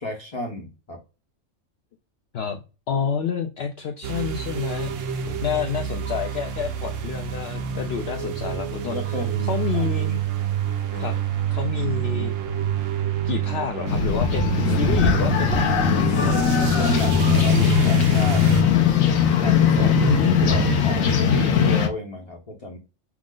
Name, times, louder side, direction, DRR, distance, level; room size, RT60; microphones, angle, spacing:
voice 1, 0.0-1.0 5.2-5.6 8.8-9.9 10.9-11.1 16.3-18.5 19.4-22.8, left 2 dB, 30° left, 0 dB, 0.8 m, -32 dB
voice 2, 2.9-4.9 5.4-9.2 9.5-10.2 11.0-11.2 11.5-12.3 13.2-16.6 19.8-20.6, left 7 dB, 60° left, 4 dB, 0.7 m, -28 dB
sound 1, 4.0-18.6, right 7 dB, 75° right, 1.0 m, -27 dB
sound 2, 13.9-21.9, left 6 dB, 85° left, 1.2 m, -20 dB
5.9 x 2.0 x 3.7 m, 0.30 s
omnidirectional pair, 1.4 m